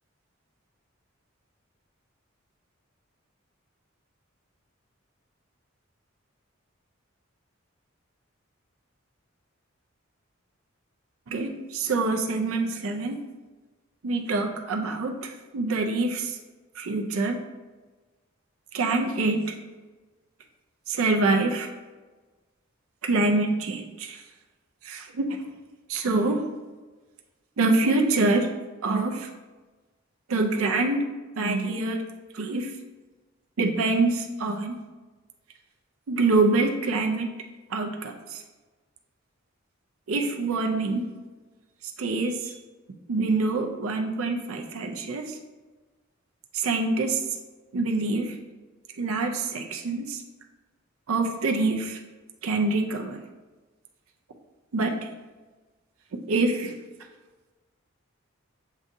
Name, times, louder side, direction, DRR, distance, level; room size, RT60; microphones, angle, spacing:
voice 1, 11.3-13.2 14.0-16.4 16.8-17.4 18.7-19.6 20.9-21.7 23.0-24.2 24.8-25.3 25.9-26.4 27.6-28.5 28.8-29.3 30.3-31.0 31.4-32.0 32.3-32.7 33.6-34.7 36.1-37.3 37.7-38.4 40.1-41.1 42.0-42.5 43.1-45.4 46.5-47.2 47.7-48.4 49.0-50.2 51.1-52.0 52.4-53.2 54.7-55.1 56.3-56.7, right 3 dB, 85° right, 3 dB, 0.5 m, -25 dB
7.1 x 2.6 x 2.5 m, 1.3 s
head